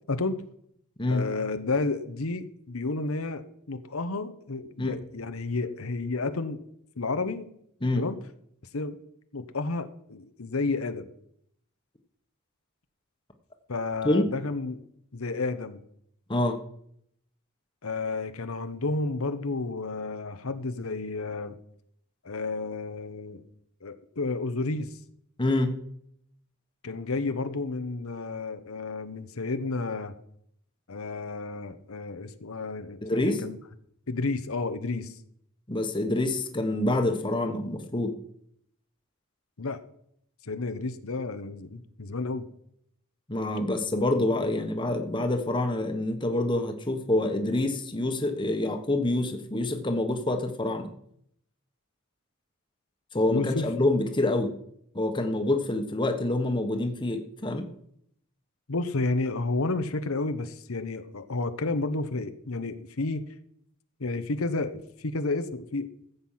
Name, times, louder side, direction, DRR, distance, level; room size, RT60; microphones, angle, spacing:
voice 1, 0.1-0.4 1.1-6.6 7.0-7.5 7.9-8.2 8.7-9.0 9.3-11.1 13.7-14.8 15.1-15.8 17.8-21.6 22.2-23.4 23.8-25.0 26.8-30.1 30.9-33.6 34.1-35.1 39.6-39.8 40.4-42.5 53.3-53.7 58.7-63.2 64.0-65.9, left 3 dB, 90° left, 9 dB, 1.0 m, -31 dB
voice 2, 25.4-25.7 33.0-33.4 35.7-38.2 43.3-50.9 53.1-54.5 54.9-57.7, left 2 dB, 20° left, 5 dB, 1.3 m, -26 dB
14.5 x 8.1 x 5.7 m, 0.71 s
head